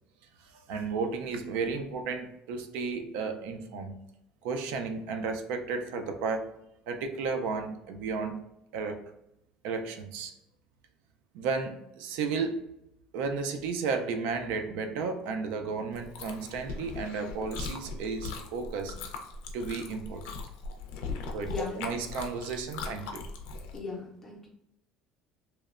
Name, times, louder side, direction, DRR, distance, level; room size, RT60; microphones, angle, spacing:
voice 1, 0.4-4.0 4.4-6.5 6.9-8.4 8.7-9.0 9.6-10.3 11.3-12.7 13.1-19.0 19.5-20.4 21.3-23.2, right 4 dB, 70° right, 5 dB, 0.3 m, -33 dB
Chewing mastication, 15.9-23.8, left 4 dB, 85° left, 0.4 m, -40 dB
voice 2, 21.1-21.8 23.7-24.5, left 3 dB, 10° left, -2 dB, 0.5 m, -38 dB
2.9 x 2.0 x 2.3 m, 0.83 s
cardioid pair, 180°, 2 cm